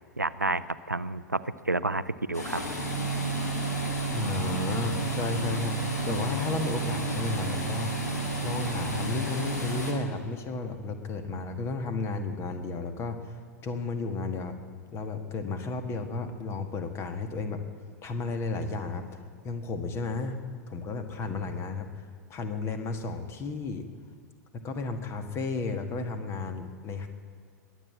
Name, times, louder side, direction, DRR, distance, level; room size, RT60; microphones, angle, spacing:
voice 1, 0.2-2.6, right 2 dB, 90° right, 15 dB, 0.5 m, -30 dB
sound 1, 2.3-9.9, right 2 dB, 70° left, 2.8 m, -31 dB
voice 2, 4.1-5.8 6.1-7.9 8.4-13.2 13.6-14.5 14.9-17.6 18.0-19.2 19.4-20.4 20.7-21.9 22.3-23.9 24.5-27.1, left 3 dB, 30° left, 8 dB, 1.6 m, -33 dB
21.5 x 8.5 x 7.5 m, 2.2 s
figure-of-eight pair, 90°, 9 cm